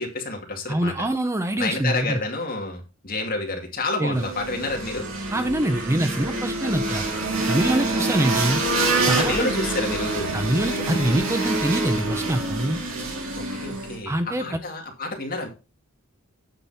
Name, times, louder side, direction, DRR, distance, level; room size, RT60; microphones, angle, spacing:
voice 1, 0.0-1.1 1.6-5.1 9.2-10.3 13.3-15.5, left 2 dB, 40° left, 2 dB, 2.2 m, -29 dB
voice 2, 0.7-2.2 4.0-4.3 5.3-7.0 7.5-8.6 9.1-9.5 10.3-12.8 14.1-14.6, right 1 dB, 15° right, 9 dB, 0.5 m, -24 dB
sound 1, 4.1-14.0, right 2 dB, 65° right, 2.6 m, -26 dB
sound 2, 4.5-14.0, right 1 dB, 85° right, 1.6 m, -38 dB
9.0 x 5.9 x 4.2 m, 0.31 s
head